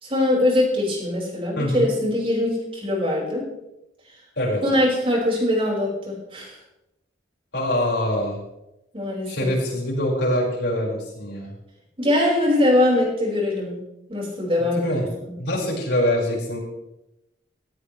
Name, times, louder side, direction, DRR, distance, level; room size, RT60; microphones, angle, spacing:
voice 1, 0.0-3.4 4.6-6.5 8.9-9.5 12.0-13.8 14.1-14.9 15.2-15.3, left 1 dB, 30° right, -2 dB, 5.5 m, -22 dB
voice 2, 1.6-1.9 4.4-4.6 7.5-8.4 9.3-11.5 14.8-15.0 15.4-16.6, left 1 dB, 70° left, -3 dB, 5.6 m, -24 dB
17.5 x 16.0 x 3.3 m, 0.89 s
head